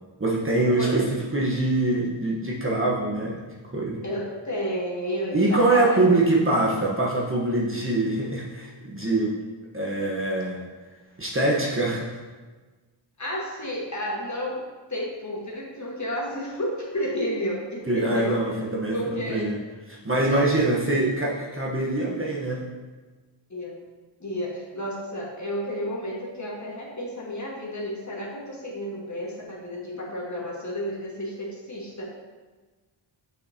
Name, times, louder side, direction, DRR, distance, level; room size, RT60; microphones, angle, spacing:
voice 1, 0.2-4.0 5.3-9.4 9.7-10.6 11.2-12.1 17.9-19.6 19.9-22.6, right 2 dB, 25° right, -4 dB, 1.1 m, -24 dB
voice 2, 4.0-6.0 13.2-14.6 14.9-18.4 18.9-19.5 20.3-20.6 23.5-23.8 24.2-32.1, equal, 35° left, -3 dB, 1.6 m, -31 dB
6.6 x 5.6 x 2.8 m, 1.3 s
wide cardioid pair, 65°, 49 cm